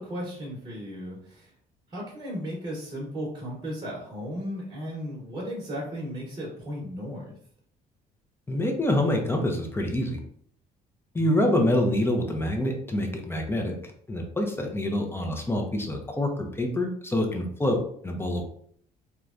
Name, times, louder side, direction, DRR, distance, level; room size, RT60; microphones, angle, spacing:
voice 1, 0.0-1.5 1.9-7.4 11.1-11.4, equal, 25° right, -5 dB, 1.0 m, -35 dB
voice 2, 8.5-10.2 11.1-13.8 14.1-17.8 18.0-18.4, left 1 dB, 15° left, 2 dB, 0.5 m, -26 dB
3.1 x 2.2 x 2.4 m, 0.62 s
cardioid pair, 110°, 17 cm